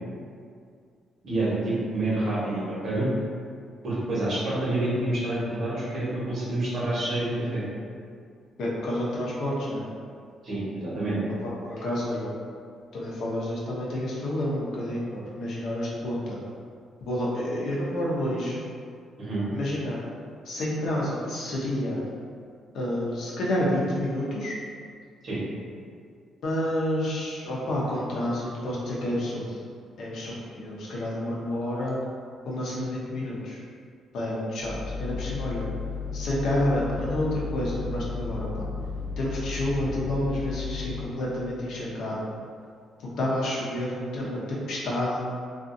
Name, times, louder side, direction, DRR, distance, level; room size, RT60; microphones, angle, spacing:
voice 1, 1.2-3.1 3.8-7.6 10.4-11.2 19.2-19.4 25.2-25.4, right 2 dB, 60° right, -8 dB, 1.0 m, -28 dB
voice 2, 8.6-9.8 11.4-12.3 12.9-16.4 17.0-18.6 19.5-20.0 20.4-22.1 22.7-24.6 26.4-29.6 30.0-32.0 32.4-33.6 34.1-35.7 36.1-38.7 39.2-42.2 43.2-45.3, left 1 dB, 70° left, -5 dB, 0.6 m, -29 dB
sound 1, 34.6-41.2, left 4 dB, 30° right, 0.8 m, -34 dB
2.5 x 2.4 x 2.6 m, 2.2 s
cardioid pair, 90°, 0 cm